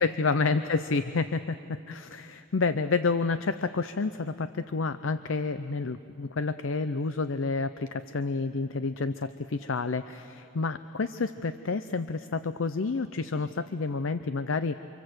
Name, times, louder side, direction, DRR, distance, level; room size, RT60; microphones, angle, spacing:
voice 1, 0.0-14.8, left 4 dB, 80° left, 12 dB, 0.6 m, -29 dB
29.5 x 25.5 x 8.0 m, 2.8 s
head